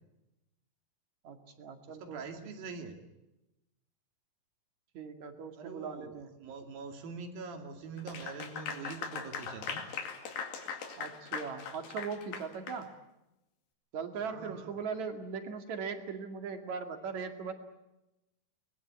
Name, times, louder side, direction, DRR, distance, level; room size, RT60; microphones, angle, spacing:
voice 1, 1.2-2.5 4.9-6.3 11.0-12.9 13.9-17.5, right 5 dB, 55° right, 6 dB, 3.3 m, -39 dB
voice 2, 1.9-3.0 5.6-9.9 14.2-14.7, right 4 dB, 85° right, 5 dB, 4.4 m, -44 dB
Clapping / Applause, 8.0-12.8, left 6 dB, 85° left, 4.1 m, -40 dB
23.0 x 21.0 x 8.6 m, 0.95 s
omnidirectional pair, 4.0 m